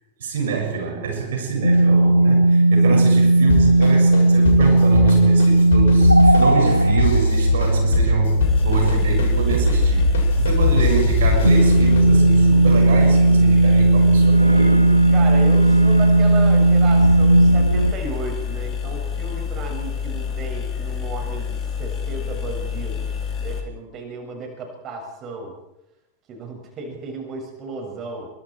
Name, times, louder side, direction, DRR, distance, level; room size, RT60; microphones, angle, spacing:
voice 1, 0.2-14.8, right 5 dB, 60° right, 2 dB, 6.8 m, -26 dB
sound 1, 1.6-17.9, right 1 dB, 85° right, 1.0 m, -16 dB
sound 2, 3.5-12.0, left 6 dB, 60° left, 7.2 m, -25 dB
sound 3, 8.4-23.6, left 7 dB, 25° left, 4.4 m, -28 dB
voice 2, 15.1-23.1 23.4-25.6 26.3-28.3, right 3 dB, 30° right, 2 dB, 7.1 m, -34 dB
28.0 x 24.5 x 4.8 m, 0.86 s
figure-of-eight pair, 90°, 0 cm